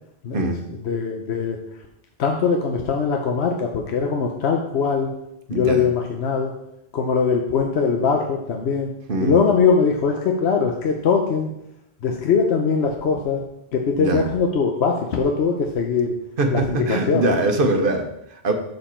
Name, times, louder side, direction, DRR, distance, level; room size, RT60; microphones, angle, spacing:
voice 1, 0.8-1.6 2.2-5.2 5.5-6.5 6.9-8.9 9.2-11.5 12.0-13.4 13.7-16.1 16.5-17.3, left 5 dB, 75° left, 2 dB, 1.0 m, -21 dB
voice 2, 5.5-5.9 9.1-9.4 14.0-14.3 16.4-18.5, right 2 dB, 55° right, 5 dB, 1.1 m, -22 dB
7.1 x 6.5 x 4.3 m, 0.81 s
omnidirectional pair, 1.1 m